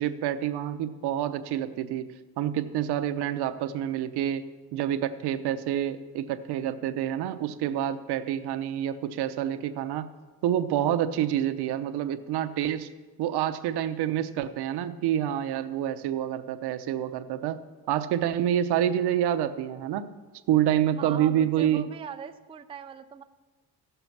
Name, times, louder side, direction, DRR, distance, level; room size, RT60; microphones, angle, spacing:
voice 1, 0.0-2.1 2.4-4.4 4.7-10.1 10.4-12.9 13.2-17.6 17.9-20.1 20.5-21.8, right 11 dB, 90° right, 11 dB, 0.8 m, -27 dB
voice 2, 21.0-23.2, right 8 dB, 15° right, 8 dB, 0.4 m, -41 dB
15.5 x 6.8 x 5.9 m, 1.3 s
cardioid pair, 150°, 38 cm